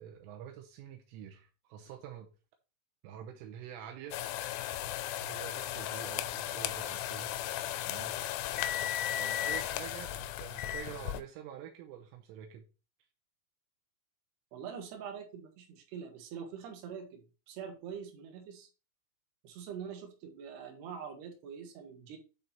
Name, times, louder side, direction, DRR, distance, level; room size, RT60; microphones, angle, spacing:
voice 1, 0.0-2.3 3.0-4.2 5.2-7.3 7.9-8.5 9.2-12.6, right 9 dB, 80° right, 3 dB, 3.4 m, -47 dB
sound 1, 4.1-11.2, left 12 dB, 85° left, 2.8 m, -35 dB
voice 2, 14.5-18.7 19.4-22.2, right 7 dB, 60° right, 1 dB, 3.2 m, -44 dB
8.9 x 4.0 x 4.2 m, 0.31 s
omnidirectional pair, 5.9 m